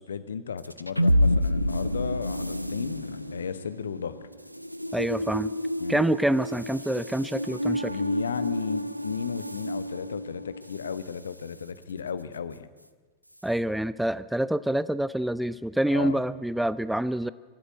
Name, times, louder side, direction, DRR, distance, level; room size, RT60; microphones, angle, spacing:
voice 1, 0.0-4.2 5.8-6.0 7.9-12.7 15.9-16.2, left 7 dB, 70° left, 15 dB, 1.0 m, -34 dB
sound 1, 0.6-11.1, left 1 dB, 90° right, 0.7 m, -29 dB
voice 2, 4.9-5.5 5.9-7.9 13.4-17.3, right 1 dB, 5° right, 17 dB, 0.5 m, -26 dB
23.5 x 12.5 x 9.0 m, 1.4 s
figure-of-eight pair, 90°, 0 cm